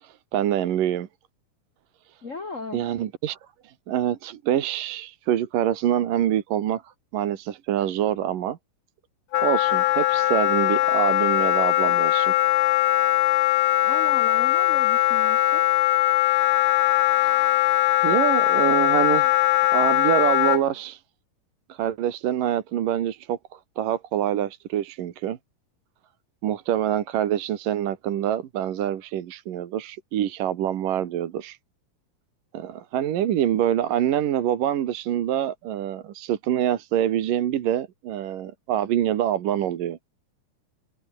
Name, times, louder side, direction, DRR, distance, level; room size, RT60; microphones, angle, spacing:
voice 1, 0.0-1.1 2.7-3.4 3.6-8.6 9.4-12.3 18.0-19.3 19.7-21.0 21.7-25.4 26.4-31.6 32.5-40.0, right 11 dB, 75° right, 3.2 m, -25 dB
voice 2, 2.2-2.9 13.8-15.7, left 3 dB, 30° left, 1.6 m, -36 dB
Wind instrument woodwind instrument, 9.3-20.6, left 17 dB, 85° left, 1.5 m, -20 dB
omnidirectional pair, 3.9 m